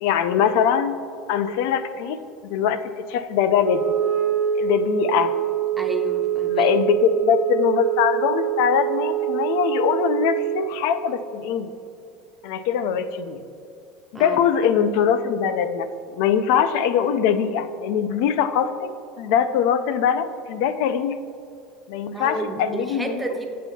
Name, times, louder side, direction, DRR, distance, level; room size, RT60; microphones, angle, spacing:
voice 1, 0.0-1.0 1.3-4.0 4.6-5.4 6.5-11.7 12.4-13.4 14.1-15.9 16.1-21.2 21.9-23.3, left 8 dB, 70° left, 11 dB, 0.4 m, -22 dB
Wind instrument woodwind instrument, 3.6-10.7, right 12 dB, 75° right, 0.9 m, -25 dB
voice 2, 5.8-6.7 14.1-14.4 22.1-23.5, right 1 dB, 10° right, 4 dB, 0.6 m, -30 dB
8.0 x 7.4 x 2.7 m, 2.5 s
supercardioid pair, 140°, 0 cm